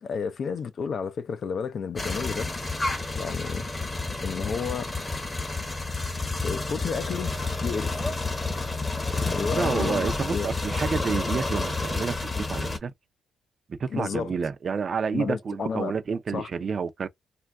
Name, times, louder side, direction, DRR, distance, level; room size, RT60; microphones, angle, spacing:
voice 1, 0.0-2.5 3.1-3.7 4.2-4.9 6.4-7.3 7.6-8.0 9.3-10.5 13.9-14.3 15.1-15.9 16.3-16.5, left 6 dB, 50° left, 0.4 m, -31 dB
sound 1, 2.0-12.8, left 3 dB, 25° left, 0.8 m, -30 dB
voice 2, 9.5-12.9 13.7-17.1, right 5 dB, 45° right, 0.5 m, -29 dB
2.3 x 2.2 x 3.4 m
cardioid pair, 90°, 0 cm